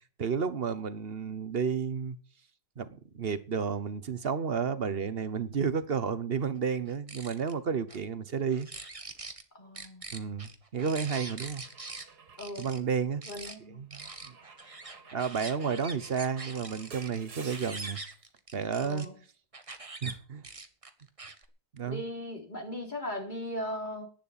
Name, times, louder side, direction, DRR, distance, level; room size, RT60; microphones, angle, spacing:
voice 1, 0.2-2.2 2.8-8.7 10.1-11.6 12.6-13.2 13.8-14.4 15.1-18.0 18.5-19.1 20.0-20.4 21.7-22.0, right 6 dB, 40° right, 1.1 m, -31 dB
sound 1, 6.9-7.5 7.9-8.0 8.5-9.4 9.8-12.1 12.4-12.8 13.2-13.6 13.9-19.1 19.5-20.1 20.4-21.5, right 3 dB, 20° right, 1.4 m, -43 dB
voice 2, 9.5-10.1 12.4-12.7 13.3-13.8 18.8-19.2 21.8-24.1, left 1 dB, 30° left, 3.6 m, -38 dB
Car / Engine / Glass, 11.1-13.3 14.0-18.2, right 5 dB, 80° right, 2.3 m, -53 dB
11.0 x 9.7 x 8.6 m
omnidirectional pair, 1.7 m